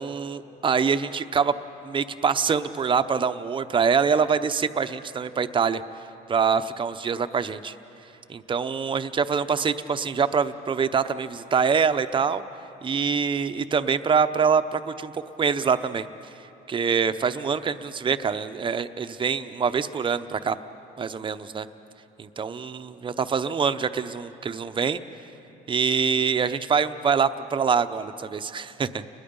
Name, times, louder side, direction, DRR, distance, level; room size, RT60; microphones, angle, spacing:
voice 1, 0.0-1.5 1.8-5.8 6.3-7.7 8.3-12.4 12.8-16.1 16.7-20.6 21.0-21.7 22.2-25.0 25.7-29.0, right 6 dB, 30° right, 10 dB, 0.8 m, -25 dB
30.0 x 20.5 x 5.4 m, 2.9 s
cardioid pair, 110°, 17 cm